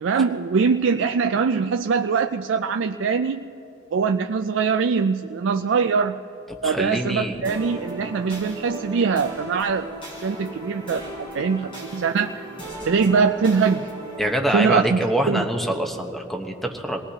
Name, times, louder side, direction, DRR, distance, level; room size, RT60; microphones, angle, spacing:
voice 1, 0.0-3.4 3.9-6.2 6.6-9.9 10.2-11.0 11.3-12.4 12.9-13.9 14.5-15.4, right 5 dB, 65° right, 5 dB, 0.4 m, -22 dB
voice 2, 6.6-7.4 14.2-17.0, right 1 dB, ahead, 3 dB, 1.1 m, -25 dB
sound 1, 7.4-14.3, right 1 dB, 30° left, 4.1 m, -36 dB
26.0 x 19.0 x 2.9 m, 2.9 s
head